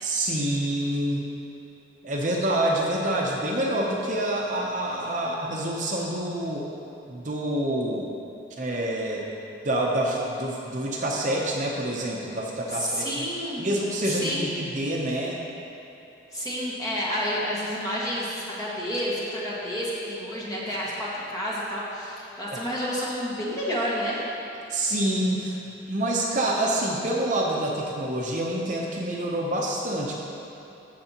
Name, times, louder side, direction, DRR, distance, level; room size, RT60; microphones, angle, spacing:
voice 1, 0.0-1.3 2.0-6.7 7.1-8.1 8.6-9.3 9.6-13.2 13.6-15.4 24.7-30.1, right 1 dB, 40° right, -2 dB, 0.7 m, -27 dB
voice 2, 12.7-13.7 14.0-14.5 16.3-24.2, equal, 20° left, -7 dB, 1.7 m, -30 dB
15.0 x 6.6 x 2.9 m, 2.9 s
head